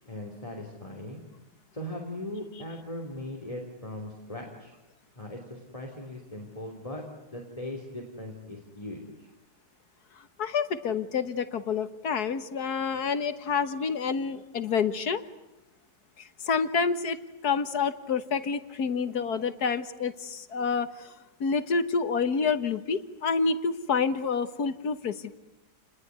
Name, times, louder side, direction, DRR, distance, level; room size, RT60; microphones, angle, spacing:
voice 1, 0.1-1.2 1.7-4.7 5.2-7.0 7.3-9.3, left 1 dB, 20° left, 0 dB, 3.4 m, -39 dB
voice 2, 10.4-15.2 16.2-17.2 17.4-21.1 21.4-25.4, left 5 dB, 65° left, 11 dB, 1.8 m, -28 dB
30.0 x 20.5 x 9.5 m, 0.99 s
omnidirectional pair, 1.8 m